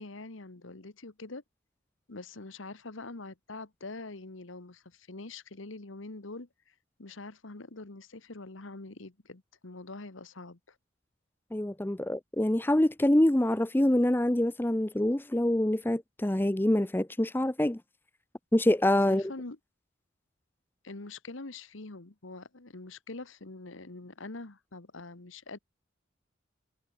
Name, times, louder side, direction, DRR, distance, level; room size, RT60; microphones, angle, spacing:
voice 1, 0.0-1.4 2.1-6.7 7.0-10.7 18.9-19.6 20.8-25.6, left 3 dB, 70° left, 1.4 m, -44 dB
voice 2, 11.5-17.8 18.5-19.3, left 1 dB, 10° left, 0.5 m, -25 dB
head